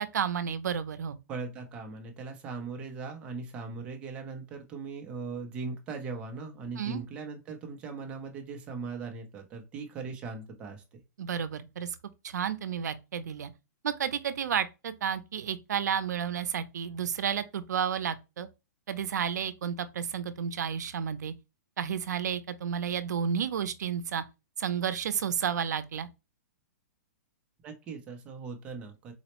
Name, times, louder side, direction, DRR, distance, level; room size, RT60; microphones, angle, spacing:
voice 1, 0.0-1.2 6.8-7.0 11.2-11.9 12.2-13.5 13.8-18.5 18.9-21.3 21.8-24.2 24.6-26.1, right 8 dB, 80° right, 0.5 m, -31 dB
voice 2, 1.3-11.0 27.6-29.1, right 4 dB, 10° right, 0.5 m, -39 dB
4.1 x 2.0 x 2.9 m
hypercardioid pair, 175°, 9 cm